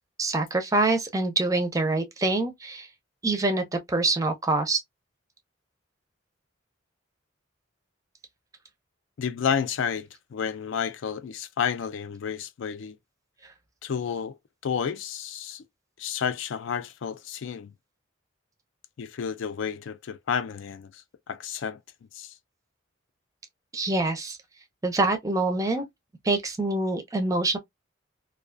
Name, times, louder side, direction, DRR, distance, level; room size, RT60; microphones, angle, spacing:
voice 1, 0.2-2.9 3.2-4.8 23.7-24.4 24.8-25.8 26.2-27.6, right 2 dB, 15° right, 0.5 m, -25 dB
voice 2, 9.2-13.0 13.8-14.4 14.6-15.6 16.0-17.7 19.0-21.0 21.3-21.8 22.1-22.3, left 7 dB, 70° left, 0.3 m, -31 dB
2.3 x 2.3 x 2.3 m
head